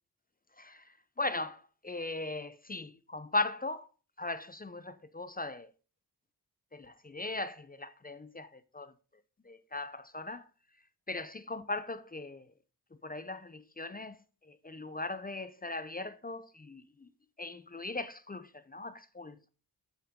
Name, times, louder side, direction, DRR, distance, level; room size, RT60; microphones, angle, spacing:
voice 1, 0.6-3.9 4.2-5.7 6.7-8.9 9.4-10.5 11.1-12.5 13.0-17.1 17.4-19.5, left 2 dB, 20° left, 0.6 m, -39 dB
9.1 x 7.5 x 3.7 m
wide cardioid pair, 90°, 39 cm